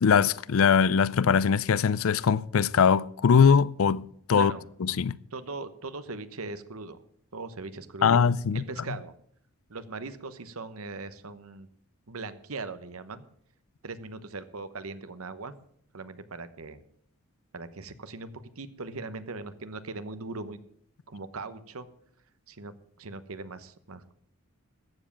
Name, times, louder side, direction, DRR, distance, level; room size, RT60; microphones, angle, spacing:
voice 1, 0.0-4.5 4.8-5.1 8.0-8.6, left 6 dB, 70° left, 0.4 m, -22 dB
voice 2, 4.3-4.7 5.3-7.0 7.3-8.3 8.5-9.1 9.7-11.7 12.1-13.2 13.8-15.5 15.9-16.8 17.5-20.6 21.1-21.9 22.5-22.7 23.0-24.1, right 3 dB, 75° right, 1.0 m, -39 dB
14.0 x 7.5 x 7.2 m
head